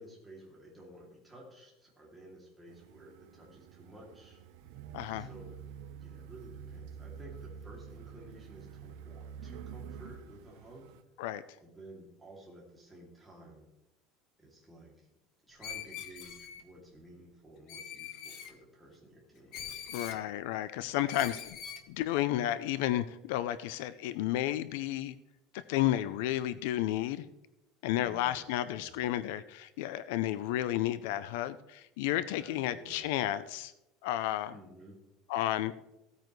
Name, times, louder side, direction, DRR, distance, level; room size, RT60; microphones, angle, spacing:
voice 1, 0.0-4.4 5.1-5.5 6.0-10.9 11.6-13.7 14.4-14.9 15.5-20.3 27.9-29.1 32.4-33.1 34.5-35.0, right 1 dB, 5° right, -4 dB, 2.7 m, -53 dB
sound 1, 2.7-11.0, right 7 dB, 60° right, 0.7 m, -48 dB
voice 2, 4.9-5.3 11.2-11.4 19.9-21.6 21.9-25.1 25.5-27.3 27.8-33.7 34.0-34.5 35.3-35.7, left 13 dB, 70° left, 15 dB, 0.4 m, -32 dB
Screech, 15.6-16.6 17.7-18.5 19.5-20.2 21.1-21.8, left 8 dB, 40° left, 1.0 m, -43 dB
16.0 x 9.0 x 3.2 m, 0.93 s
cardioid pair, 175°, 0 cm